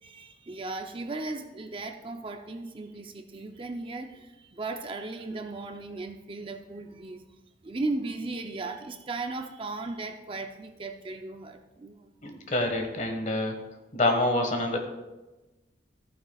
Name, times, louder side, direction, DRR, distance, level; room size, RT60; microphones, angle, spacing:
voice 1, 0.0-7.3 7.6-12.1, right 3 dB, 30° right, 5 dB, 0.5 m, -36 dB
voice 2, 12.2-13.6 13.9-14.8, left 2 dB, 45° left, 4 dB, 1.5 m, -26 dB
14.0 x 9.2 x 2.4 m, 1.1 s
head